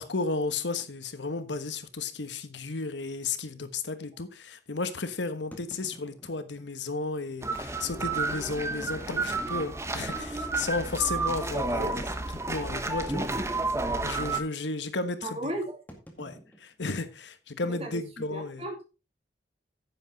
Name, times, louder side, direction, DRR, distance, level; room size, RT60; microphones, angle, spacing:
voice 1, 0.0-11.9 12.5-13.3 14.0-15.5 16.2-18.6, left 3 dB, 85° left, 1.2 m, -33 dB
sound 1, 0.8-1.0 1.7-1.8 2.1-2.2 2.8-2.9 5.5-6.7 7.5-7.6 8.7-10.1 10.6-10.7 11.8-12.9 13.1-13.5 13.8-14.1 15.9-17.5, equal, 10° left, 2.0 m, -51 dB
sound 2, 7.4-14.4, right 3 dB, 15° right, 0.9 m, -31 dB
voice 2, 15.2-15.8 17.6-18.0 18.3-18.8, right 1 dB, 35° right, 2.7 m, -35 dB
10.0 x 8.1 x 3.9 m
head